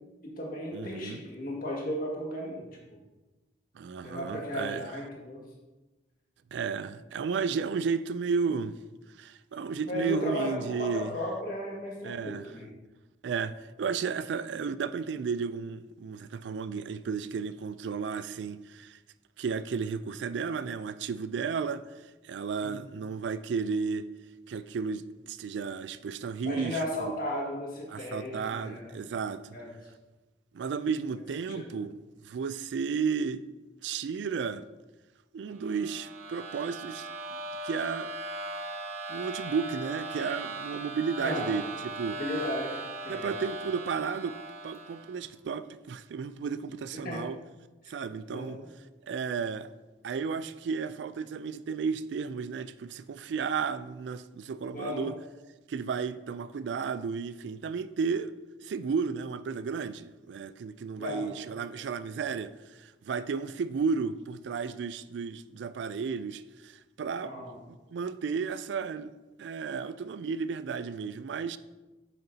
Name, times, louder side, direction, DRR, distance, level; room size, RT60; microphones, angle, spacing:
voice 1, 0.2-3.0 4.0-5.4 9.8-12.7 22.6-22.8 26.4-29.0 29.5-29.7 31.6-31.7 41.2-41.5 42.2-43.3 47.0-47.3 47.9-48.0 48.3-48.7 54.7-55.1 61.0-61.3 67.2-67.6, left 1 dB, 50° left, 1.9 m, -35 dB
voice 2, 0.7-1.2 3.8-4.8 6.5-8.8 9.2-11.1 12.0-12.4 13.2-19.0 19.4-21.8 22.2-24.1 24.5-27.2 27.9-29.5 30.5-31.9 32.2-33.4 33.8-34.6 35.3-37.1 37.6-38.1 39.1-41.7 42.0-42.2 43.1-44.4 44.6-47.4 47.9-48.6 49.1-49.7 50.0-55.1 55.7-58.3 58.6-67.3 67.9-69.1 69.4-71.6, right 5 dB, 85° right, 0.3 m, -33 dB
sound 1, 35.6-45.2, right 2 dB, 35° right, 0.9 m, -39 dB
8.5 x 6.6 x 2.8 m
head